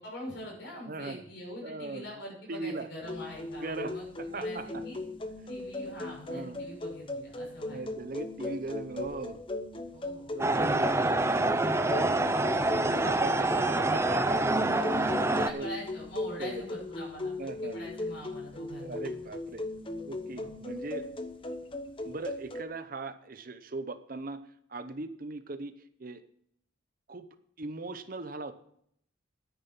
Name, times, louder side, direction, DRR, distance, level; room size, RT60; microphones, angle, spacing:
voice 1, 0.0-5.0 5.5-7.8 9.9-10.4 13.0-13.2 14.3-17.3 17.6-19.2 20.3-20.5, equal, 55° left, -1 dB, 6.2 m, -44 dB
voice 2, 0.9-1.2 1.6-2.1 2.5-2.9 3.6-4.8 6.3-6.6 7.7-9.4 10.3-14.6 15.2-15.7 16.4-16.6 17.4-17.8 18.8-19.7 20.0-21.1 22.0-24.4 24.7-25.7 26.0-26.2 27.1-28.5, right 3 dB, 45° right, 11 dB, 0.8 m, -39 dB
sound 1, 3.0-22.6, left 2 dB, 25° left, 0.9 m, -38 dB
sound 2, 10.4-15.5, right 2 dB, 15° right, 0.5 m, -26 dB
10.0 x 9.5 x 5.9 m, 0.68 s
head